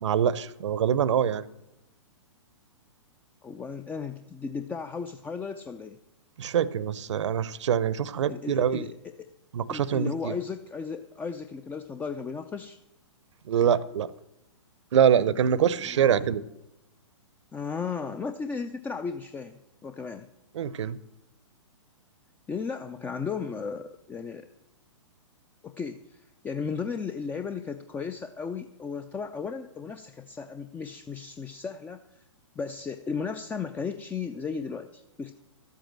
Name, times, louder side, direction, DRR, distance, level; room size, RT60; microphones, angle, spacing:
voice 1, 0.0-1.5 6.4-8.9 9.5-10.3 13.5-14.1 14.9-16.4 20.5-21.0, right 8 dB, 65° right, 0.7 m, -24 dB
voice 2, 3.4-6.0 8.3-9.3 9.7-12.8 15.8-16.1 17.5-20.3 22.5-24.5 25.6-32.2 32.6-35.3, left 5 dB, 10° left, 0.5 m, -35 dB
12.5 x 8.3 x 7.6 m
hypercardioid pair, 120°, 16 cm